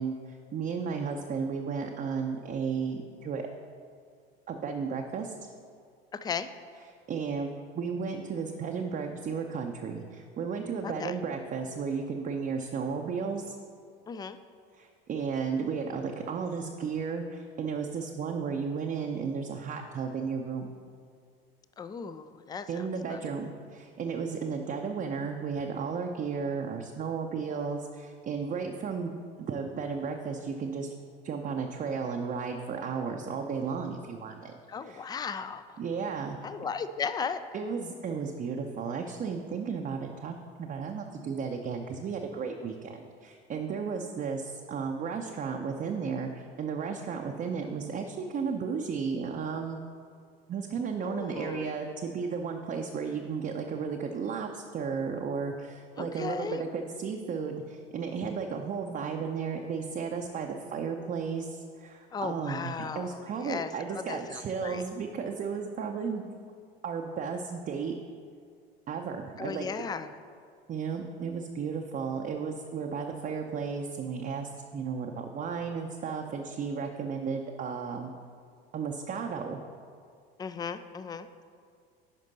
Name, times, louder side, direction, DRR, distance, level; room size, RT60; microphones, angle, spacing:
voice 1, 0.0-3.5 4.5-5.3 7.1-13.6 14.7-20.7 22.7-30.9 31.2-34.5 34.8-35.1 35.8-36.4 37.5-49.8 50.5-66.3 66.8-67.9 68.9-69.7 70.7-78.1 78.7-79.6, right 5 dB, 30° right, 2 dB, 0.6 m, -34 dB
voice 2, 10.8-11.1 14.1-14.4 21.8-23.2 34.7-35.8 36.4-37.4 51.0-51.7 56.0-56.6 62.1-64.8 69.4-70.1 80.4-81.3, left 6 dB, 15° left, 12 dB, 0.3 m, -36 dB
10.5 x 5.2 x 4.0 m, 2.2 s
hypercardioid pair, 70°, 30 cm